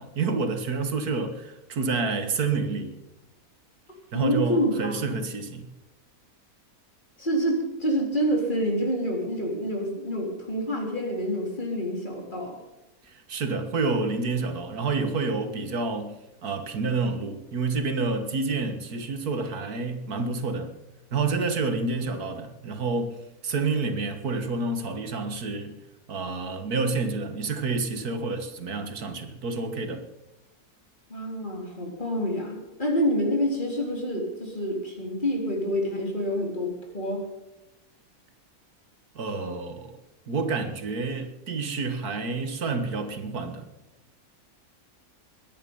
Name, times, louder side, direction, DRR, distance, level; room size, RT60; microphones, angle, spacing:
voice 1, 0.0-3.0 4.1-5.7 13.1-20.7 21.1-25.8 26.1-30.0 39.2-39.9 40.3-43.7, right 4 dB, 85° right, 2.1 m, -29 dB
voice 2, 4.1-5.2 7.2-12.6 31.1-37.2, equal, 30° left, 4.1 m, -27 dB
21.5 x 10.0 x 5.5 m
omnidirectional pair, 1.6 m